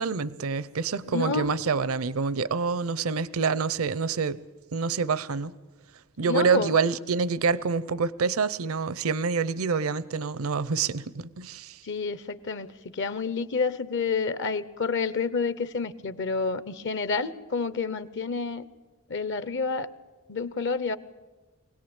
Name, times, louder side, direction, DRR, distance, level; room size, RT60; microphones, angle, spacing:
voice 1, 0.0-4.4 4.7-5.5 6.2-11.8, right 5 dB, 70° right, 0.7 m, -27 dB
voice 2, 1.1-1.6 6.2-6.7 11.8-18.7 19.1-19.9 20.3-21.0, left 4 dB, 55° left, 0.8 m, -29 dB
24.0 x 17.5 x 8.8 m
head